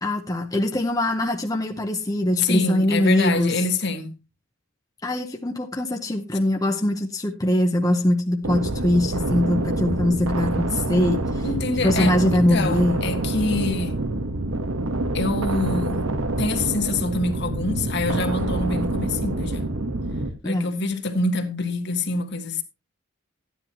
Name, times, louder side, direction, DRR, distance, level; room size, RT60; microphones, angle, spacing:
voice 1, 0.0-3.5 5.0-11.5 11.8-13.0 20.4-20.8, left 1 dB, 15° left, 0.8 m, -22 dB
voice 2, 2.4-4.1 11.4-12.1 12.5-14.0 15.1-16.1 16.4-19.7 20.4-22.6, left 3 dB, 50° left, 1.6 m, -26 dB
sound 1, 8.4-20.3, right 2 dB, 80° right, 1.3 m, -26 dB
13.5 x 10.0 x 3.0 m
head